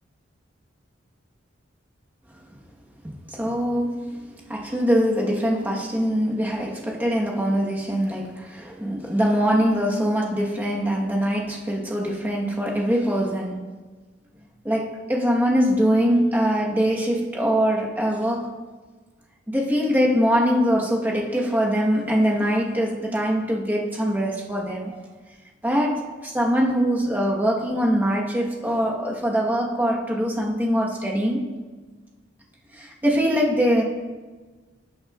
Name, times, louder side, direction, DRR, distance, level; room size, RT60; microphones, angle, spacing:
voice 1, 3.0-4.2 4.5-13.6 14.6-18.5 19.5-25.0 25.6-31.5 32.8-33.8, equal, 10° right, -2 dB, 1.2 m, -23 dB
17.5 x 6.5 x 2.4 m, 1.3 s
head